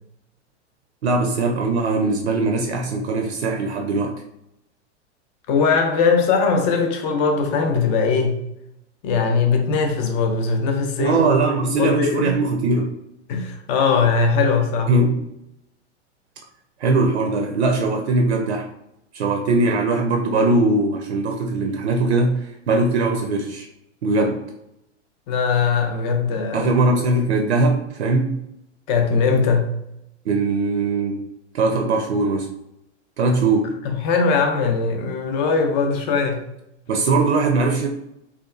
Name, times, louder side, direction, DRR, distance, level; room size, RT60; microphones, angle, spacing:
voice 1, 1.0-4.2 11.0-12.9 14.9-15.2 16.8-18.7 19.1-23.7 24.0-24.4 26.5-28.4 30.3-31.2 31.5-32.5 33.2-33.7 36.9-37.9, right 3 dB, 65° right, 0.5 m, -20 dB
voice 2, 5.5-8.4 9.0-11.2 11.6-12.4 13.3-15.0 25.3-26.7 28.9-29.7 33.8-36.4, left 5 dB, 40° left, 0.5 m, -20 dB
2.7 x 2.3 x 2.3 m
figure-of-eight pair, 95°, 35 cm